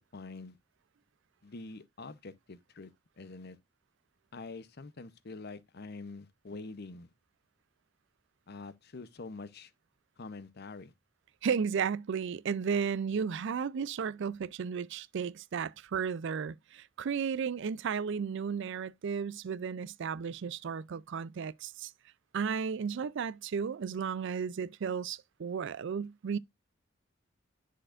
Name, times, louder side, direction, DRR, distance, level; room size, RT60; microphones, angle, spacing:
voice 1, 0.1-0.6 1.4-3.6 4.3-7.1 8.5-9.7 10.2-10.9, left 3 dB, 55° left, 0.8 m, -45 dB
voice 2, 11.4-21.9 22.3-26.4, right 6 dB, 65° right, 0.4 m, -34 dB
10.0 x 6.5 x 2.4 m
head